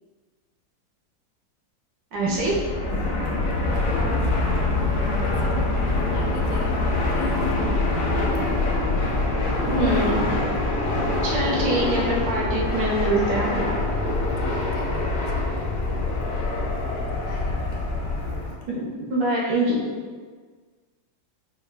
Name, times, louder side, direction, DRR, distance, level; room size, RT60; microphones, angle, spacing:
voice 1, 2.1-2.7 2.9-3.0 9.5-10.4 11.2-13.8 18.7-19.9, right 1 dB, 70° right, -4 dB, 1.5 m, -25 dB
Fixed-wing aircraft airplane, 2.2-18.6, left 2 dB, 60° left, 0.9 m, -24 dB
voice 2, 3.7-7.8 14.4-15.6 16.8-17.6, left 3 dB, 80° left, 3 dB, 1.3 m, -40 dB
5.1 x 2.3 x 3.3 m, 1.5 s
omnidirectional pair, 2.1 m